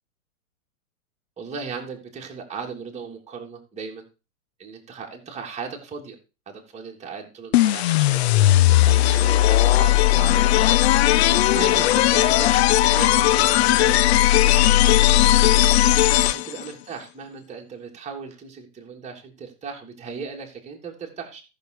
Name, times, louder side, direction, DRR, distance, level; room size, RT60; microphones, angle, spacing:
voice 1, 1.4-4.1 4.6-6.2 6.5-8.4 8.8-10.7 11.3-12.5 12.9-15.8 16.3-21.4, right 5 dB, 15° right, -1 dB, 3.2 m, -36 dB
sound 1, 7.5-16.7, left 14 dB, 50° left, 0.4 m, -17 dB
13.5 x 6.8 x 4.8 m, 0.31 s
hypercardioid pair, 125°, 44 cm